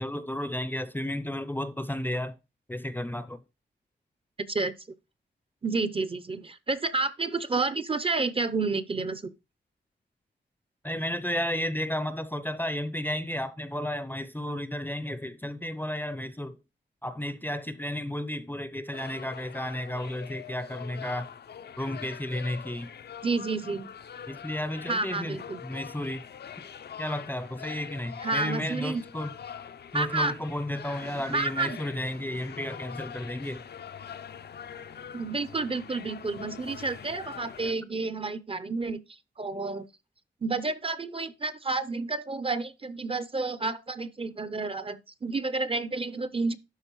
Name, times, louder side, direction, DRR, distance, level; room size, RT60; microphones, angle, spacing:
voice 1, 0.0-2.4 2.7-3.4 10.8-16.6 17.0-21.3 21.8-22.9 24.3-26.3 27.0-29.3 29.9-33.7, left 1 dB, 10° left, 0.5 m, -33 dB
voice 2, 5.6-9.2 23.2-23.9 24.9-25.6 28.2-29.0 29.9-30.3 31.3-31.8 35.1-39.0 39.4-39.9 40.4-46.6, right 3 dB, 30° right, 0.6 m, -30 dB
sound 1, 18.9-37.7, left 8 dB, 60° left, 0.5 m, -44 dB
12.0 x 4.2 x 3.0 m
wide cardioid pair, 105°, 19 cm